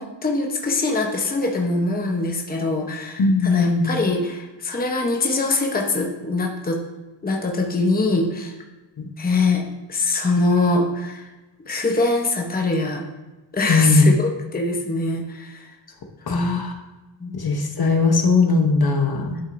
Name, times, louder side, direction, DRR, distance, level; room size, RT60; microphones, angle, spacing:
voice 1, 0.0-6.8 7.2-8.5 9.2-9.6 9.9-11.3 11.7-13.0 13.5-15.7 16.3-16.6 17.2-17.4, left 3 dB, 20° left, 1 dB, 0.8 m, -23 dB
voice 2, 3.2-3.9 9.0-9.1 13.7-14.1 16.3-16.7 17.3-19.4, left 3 dB, 55° left, 3 dB, 0.9 m, -19 dB
11.0 x 6.1 x 2.6 m, 1.1 s
wide cardioid pair, 175°, 45 cm